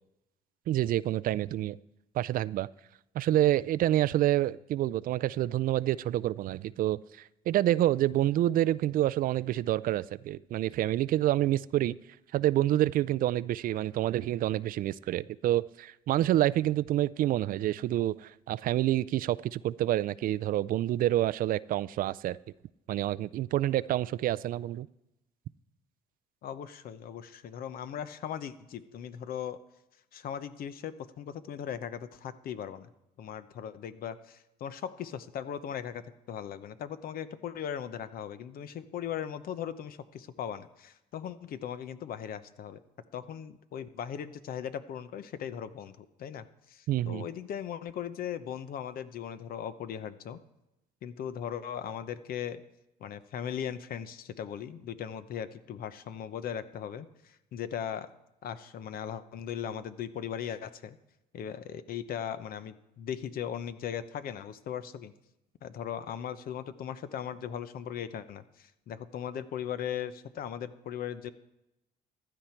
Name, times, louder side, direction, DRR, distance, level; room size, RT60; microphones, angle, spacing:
voice 1, 0.7-1.8 2.1-2.7 3.1-7.0 7.5-12.0 12.3-22.4 22.9-24.9 46.9-47.2, right 13 dB, 55° right, 18 dB, 0.4 m, -27 dB
voice 2, 26.4-29.6 30.1-32.9 33.2-36.0 36.3-42.8 43.1-50.4 51.0-52.6 53.0-58.1 58.4-61.0 61.3-65.1 65.6-71.3, left 9 dB, 60° left, 13 dB, 0.8 m, -38 dB
15.5 x 11.5 x 4.5 m, 0.90 s
cardioid pair, 110°, 17 cm